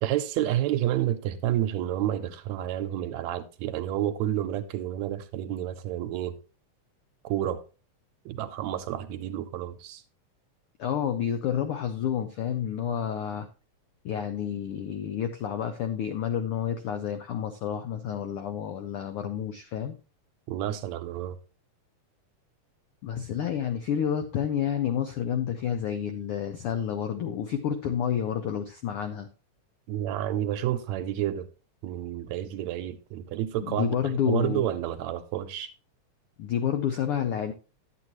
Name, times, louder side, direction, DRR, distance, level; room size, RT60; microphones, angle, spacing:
voice 1, 0.0-6.4 7.2-7.6 8.3-10.0 20.5-21.4 29.9-31.5 31.8-35.7, right 12 dB, 80° right, 1.8 m, -30 dB
voice 2, 10.8-13.5 14.0-20.0 23.0-29.3 33.6-34.7 36.4-37.5, left 9 dB, 80° left, 1.2 m, -29 dB
10.5 x 8.1 x 3.0 m
omnidirectional pair, 3.3 m